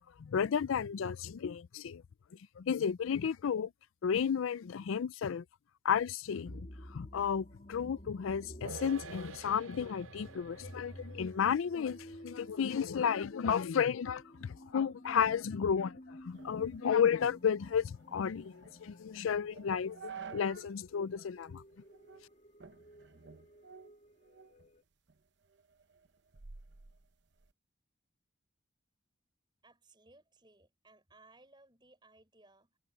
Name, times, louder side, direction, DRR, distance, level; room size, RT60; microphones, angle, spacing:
voice 1, 0.0-2.0 2.6-3.7 4.0-5.4 5.8-20.0 20.3-21.6, left 7 dB, 85° left, 0.4 m, -32 dB
sound 1, 6.5-24.8, equal, 35° left, 3.1 m, -52 dB
sound 2, 8.6-15.3 15.6-15.7, right 6 dB, 80° right, 0.5 m, -53 dB
sound 3, 16.3-20.8 21.2-21.3 21.9-22.3 22.6-24.7 25.1-27.5, right 6 dB, 60° right, 0.8 m, -52 dB
voice 2, 29.6-32.8, right 2 dB, 25° right, 6.6 m, -62 dB
head